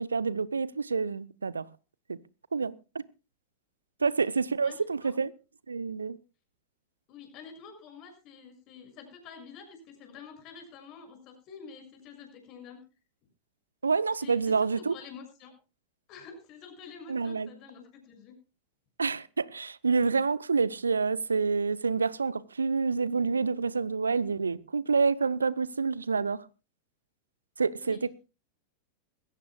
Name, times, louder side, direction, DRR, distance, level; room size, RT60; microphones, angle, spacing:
voice 1, 0.0-1.7 2.1-2.2 2.5-3.1 4.0-5.3 5.7-6.2 13.8-15.0 17.1-17.5 19.0-26.4 27.6-28.1, right 4 dB, 75° right, 0.7 m, -28 dB
voice 2, 7.1-12.8 14.2-15.5 16.1-18.3 27.8-28.0, left 6 dB, 40° left, 6.6 m, -48 dB
21.0 x 16.5 x 2.3 m
figure-of-eight pair, 90°, 0 cm